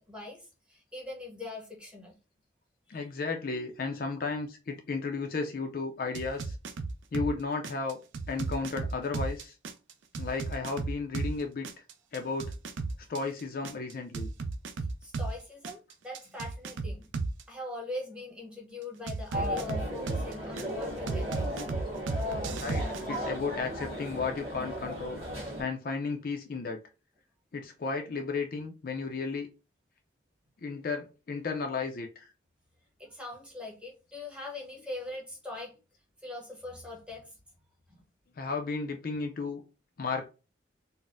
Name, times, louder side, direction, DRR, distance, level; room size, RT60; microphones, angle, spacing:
voice 1, 0.0-2.1 2.9-3.0 15.0-17.1 17.5-21.9 33.0-35.7 36.2-37.3 37.9-38.0, left 2 dB, 5° right, 0.9 m, -42 dB
voice 2, 2.9-6.6 7.1-8.0 8.3-9.5 10.2-11.8 12.1-12.5 13.1-14.3 22.6-25.2 25.6-26.8 27.5-29.5 30.6-32.3 38.4-39.6 40.0-40.3, left 4 dB, 50° left, 0.4 m, -34 dB
sound 1, 6.1-7.3 7.6-11.3 11.6-15.3 15.6-17.4 19.1-20.6 21.1-23.0, right 3 dB, 80° right, 0.4 m, -34 dB
sound 2, 19.3-25.6, equal, 30° right, 1.7 m, -36 dB
3.9 x 2.0 x 2.5 m
head